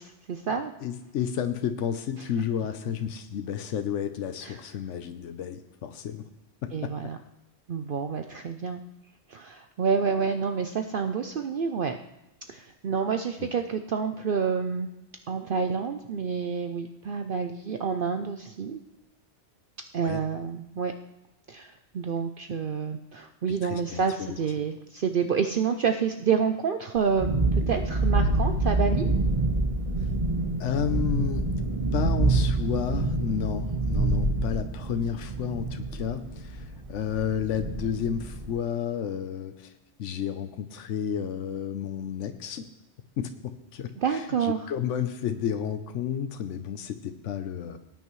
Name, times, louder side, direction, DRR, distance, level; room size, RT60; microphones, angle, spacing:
voice 1, 0.0-0.7 4.4-4.6 6.7-7.2 7.7-8.8 9.3-12.0 12.5-14.9 15.3-18.8 19.9-20.9 21.5-27.3 27.7-29.1 44.0-44.7, right 6 dB, 55° right, 7 dB, 0.7 m, -28 dB
voice 2, 0.8-6.2 6.6-6.9 13.4-13.5 20.0-20.2 23.5-24.4 30.6-31.5 31.9-39.7 40.0-42.7 43.2-47.8, left 8 dB, 80° left, 8 dB, 1.1 m, -31 dB
Thunderstorm, 26.9-38.5, right 2 dB, 30° right, 1.2 m, -27 dB
18.5 x 9.4 x 3.1 m, 0.94 s
omnidirectional pair, 1.2 m